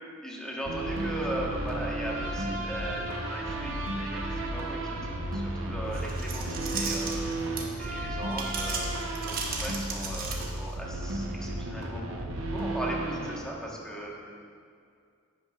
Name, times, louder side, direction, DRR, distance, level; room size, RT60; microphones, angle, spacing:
voice 1, 0.2-7.1 7.8-12.2 12.5-14.1, equal, 5° left, -3 dB, 1.1 m, -38 dB
sound 1, 0.6-13.4, right 1 dB, 65° right, 0.8 m, -33 dB
sound 2, 5.9-7.9 8.3-10.7, right 4 dB, 45° right, 1.0 m, -35 dB
10.5 x 9.0 x 2.3 m, 2.3 s
head